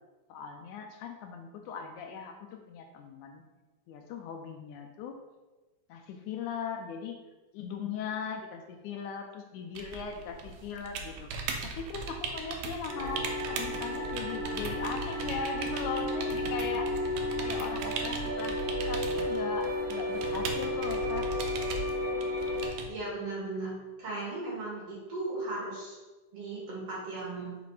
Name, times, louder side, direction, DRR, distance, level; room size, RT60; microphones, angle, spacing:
voice 1, 0.3-3.4 3.9-5.2 5.9-7.2 7.5-11.3 11.6-16.9 17.4-18.6 18.9-21.3, left 6 dB, 80° left, 4 dB, 1.9 m, -39 dB
sound 1, 9.7-22.9, right 4 dB, 85° right, 2.3 m, -39 dB
sound 2, 12.9-22.7, left 1 dB, 30° left, 0.6 m, -33 dB
voice 2, 22.9-26.0 26.3-27.6, right 2 dB, 55° right, -5 dB, 2.7 m, -37 dB
5.6 x 4.1 x 4.8 m, 1.2 s
omnidirectional pair, 3.7 m